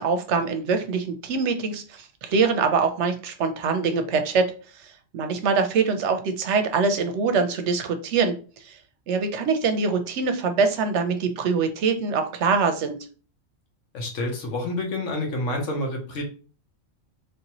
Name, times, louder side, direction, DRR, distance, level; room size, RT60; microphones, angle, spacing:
voice 1, 0.0-4.5 5.1-8.3 8.6-8.8 9.1-13.0, right 5 dB, 70° right, 7 dB, 0.8 m, -23 dB
voice 2, 13.9-16.2, left 1 dB, 75° left, 1 dB, 1.3 m, -28 dB
3.4 x 2.7 x 2.9 m, 0.37 s
omnidirectional pair, 1.3 m